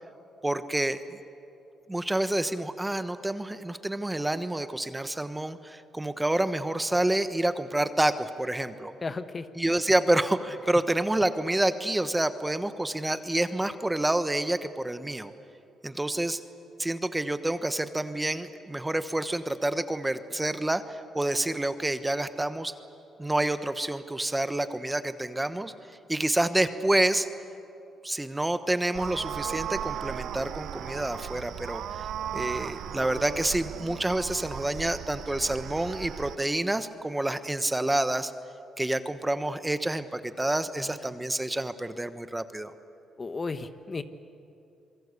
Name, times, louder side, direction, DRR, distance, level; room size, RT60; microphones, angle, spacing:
voice 1, 0.4-1.0 1.9-8.9 9.6-15.3 15.8-16.4 16.8-22.7 23.2-25.7 26.1-27.3 28.0-32.1 32.3-38.3 38.8-42.7, right 1 dB, 10° right, 11 dB, 1.1 m, -28 dB
voice 2, 9.0-9.5 40.8-41.0 43.2-44.0, left 4 dB, 30° left, 10 dB, 1.2 m, -34 dB
sound 1, 28.9-36.4, right 10 dB, 75° right, 0.6 m, -37 dB
27.0 x 23.0 x 8.4 m, 2.7 s
cardioid pair, 90°, 0 cm